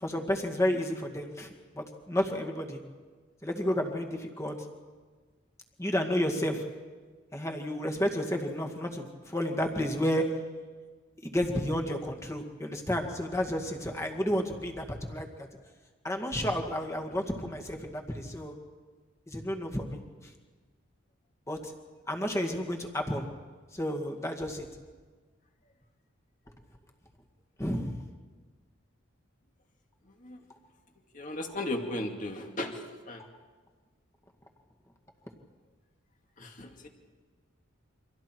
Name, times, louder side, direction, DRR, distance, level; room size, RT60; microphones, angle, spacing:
voice 1, 0.0-2.8 3.4-4.6 5.8-6.6 7.3-10.2 11.2-15.3 16.0-18.5 19.3-20.0 21.5-21.7 22.1-23.3 23.7-24.7 27.6-28.0 31.5-31.6, equal, 15° left, 2 dB, 2.0 m, -31 dB
voice 2, 31.1-32.7 33.1-33.2 36.4-36.9, left 1 dB, 40° left, 3 dB, 2.3 m, -35 dB
29.5 x 25.5 x 4.6 m, 1.4 s
head